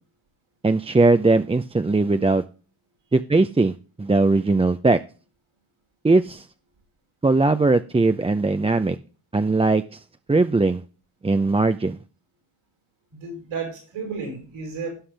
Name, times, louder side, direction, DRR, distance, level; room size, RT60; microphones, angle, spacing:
voice 1, 0.6-2.4 3.1-3.7 4.0-5.0 6.0-6.4 7.2-9.0 9.3-10.0 10.3-10.8 11.2-12.0, right 3 dB, 10° right, 9 dB, 0.5 m, -19 dB
voice 2, 13.1-14.9, right 5 dB, 85° right, 1 dB, 5.6 m, -32 dB
17.0 x 5.6 x 3.4 m, 0.37 s
supercardioid pair, 55°, 49 cm